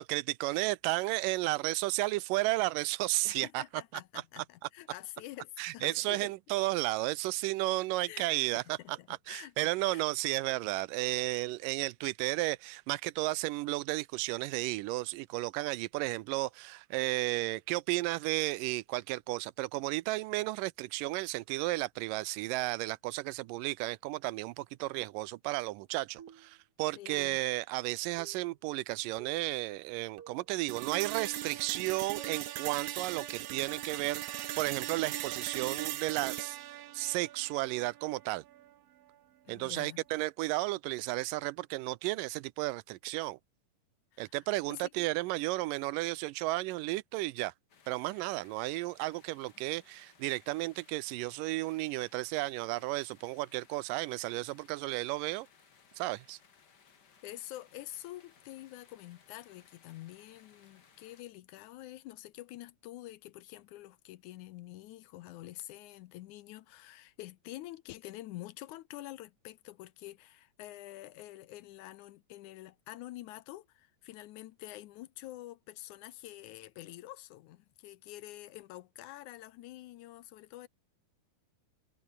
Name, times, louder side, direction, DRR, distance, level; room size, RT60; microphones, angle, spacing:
voice 1, 0.0-3.6 5.6-36.6 36.9-38.4 39.5-43.4 44.2-47.5 47.9-55.5 56.0-56.4, right 19 dB, 85° right, 2.3 m, -33 dB
voice 2, 3.2-6.3 8.1-8.5 8.8-10.0 27.0-27.4 39.5-40.0 44.1-44.4 44.7-44.8 57.2-80.7, left 15 dB, 75° left, 2.0 m, -47 dB
sound 1, 26.2-26.6 27.2-27.6 28.2-28.5 29.2-29.5 30.2-30.5 31.2-31.5 32.2-32.4 33.2-33.4, right 8 dB, 50° right, 2.2 m, -52 dB
sound 2, 30.7-38.7, right 13 dB, 65° right, 1.7 m, -39 dB
sound 3, 47.7-61.2, left 6 dB, 35° left, 2.0 m, -63 dB
omnidirectional pair, 3.8 m